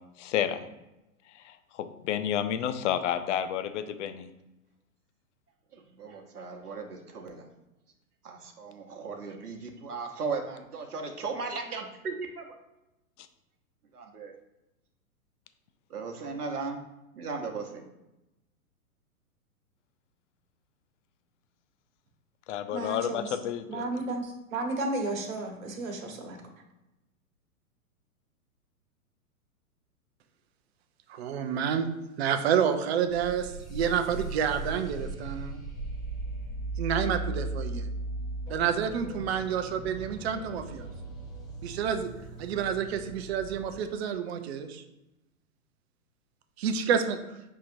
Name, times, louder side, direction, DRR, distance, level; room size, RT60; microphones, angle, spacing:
voice 1, 0.2-0.7 1.4-4.3 22.5-23.9, left 9 dB, 55° left, 11 dB, 0.5 m, -30 dB
voice 2, 5.7-7.4 8.2-12.4 13.9-14.3 15.9-16.8 17.2-17.9, right 4 dB, 90° right, 3 dB, 1.0 m, -37 dB
voice 3, 22.7-23.3 23.7-26.4, right 2 dB, 65° right, 3 dB, 1.2 m, -33 dB
voice 4, 31.1-31.9 32.2-35.6 36.8-37.9 38.5-40.9 41.6-42.1 42.4-44.8 46.6-47.2, right 8 dB, 45° right, 8 dB, 0.6 m, -29 dB
sound 1, 33.1-43.8, right 2 dB, 10° left, 0.6 m, -38 dB
6.3 x 2.9 x 2.6 m, 0.96 s
hypercardioid pair, 120°, 44 cm